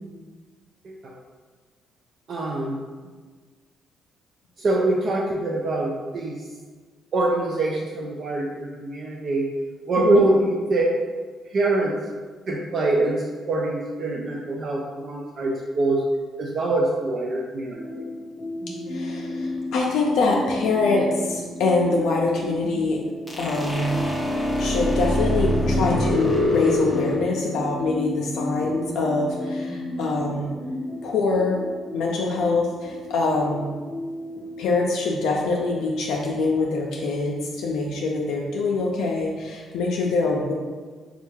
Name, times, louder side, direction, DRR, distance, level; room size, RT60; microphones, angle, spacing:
voice 1, 2.3-2.8 4.6-6.4 7.1-9.5 9.9-10.9 11.5-11.9 12.5-16.0 16.4-18.0, right 2 dB, 55° right, -2 dB, 0.4 m, -24 dB
sound 1, 17.7-34.7, left 1 dB, 15° right, 0.8 m, -34 dB
voice 2, 18.9-23.0 23.4-24.0 24.6-30.5 31.0-31.6 31.9-33.7 34.6-40.5, left 3 dB, 85° left, -2 dB, 0.4 m, -24 dB
sound 2, 23.3-27.2, left 1 dB, 10° left, 0.5 m, -24 dB
3.4 x 2.3 x 3.0 m, 1.4 s
cardioid pair, 90°, 0 cm